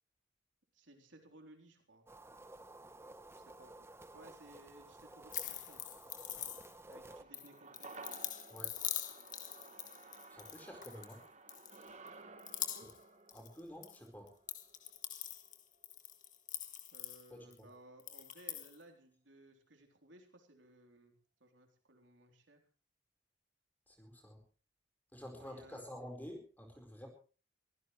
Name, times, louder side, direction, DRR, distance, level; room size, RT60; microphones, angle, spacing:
voice 1, 0.7-2.1 3.3-3.9 4.1-5.8 6.9-7.9 12.6-12.9 16.9-21.1 21.4-22.6 25.3-25.9, right 1 dB, 75° right, 4 dB, 3.7 m, -60 dB
sound 1, 2.1-7.2, right 2 dB, 15° right, 0.8 m, -54 dB
sound 2, 5.3-6.9 7.3-11.2 11.5-12.1 12.4-14.0 14.3-17.6 18.0-18.7, left 11 dB, 40° left, 1.6 m, -43 dB
sound 3, 7.1-15.6 15.9-16.0, right 3 dB, 35° right, 1.4 m, -55 dB
voice 2, 10.3-11.2 13.3-14.3 17.3-17.7 23.9-24.4 25.1-27.1, equal, 10° left, 3 dB, 4.5 m, -50 dB
23.5 x 15.5 x 3.2 m, 0.35 s
head